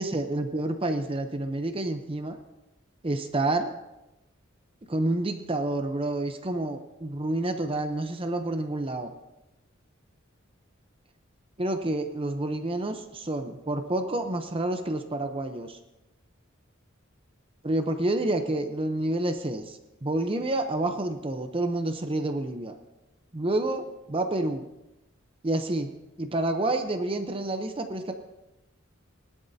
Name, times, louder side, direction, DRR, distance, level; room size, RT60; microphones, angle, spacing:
voice 1, 0.0-2.4 3.0-3.7 4.9-9.1 11.6-15.8 17.6-22.7 23.3-24.6 25.4-25.9 26.2-28.1, right 2 dB, 25° right, 6 dB, 0.8 m, -29 dB
19.5 x 12.0 x 2.8 m, 0.97 s
head